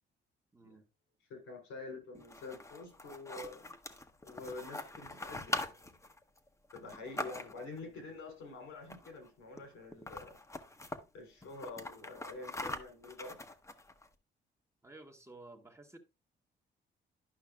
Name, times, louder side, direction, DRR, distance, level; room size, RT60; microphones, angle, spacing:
voice 1, 0.5-0.8 7.8-7.9 14.8-16.0, right 2 dB, 15° right, 1.1 m, -54 dB
voice 2, 1.3-3.7 4.2-5.8 6.7-10.4 11.1-13.4, left 3 dB, 90° left, 3.4 m, -47 dB
sound 1, 2.1-7.8 8.8-9.3 9.6-9.7 9.9-11.0 11.4-14.1, left 2 dB, 15° left, 0.9 m, -43 dB
11.0 x 5.5 x 2.3 m
cardioid pair, 90°, 20 cm